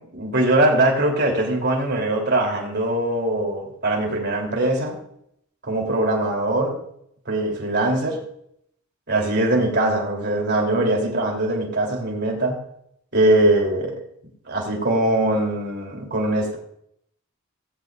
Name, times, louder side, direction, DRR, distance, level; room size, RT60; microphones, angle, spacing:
voice 1, 0.1-5.0 5.6-6.8 7.3-8.2 9.1-12.6 13.1-14.0 14.5-16.6, right 1 dB, 50° right, 0 dB, 3.6 m, -21 dB
18.5 x 15.0 x 2.6 m, 0.73 s
head